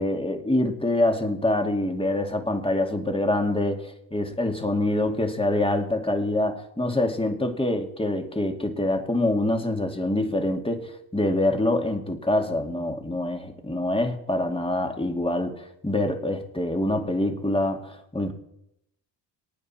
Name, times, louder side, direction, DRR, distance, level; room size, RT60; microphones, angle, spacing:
voice 1, 0.0-18.3, left 1 dB, 10° left, 4 dB, 2.3 m, -25 dB
22.5 x 9.3 x 4.4 m, 0.79 s
supercardioid pair, 65°, 46 cm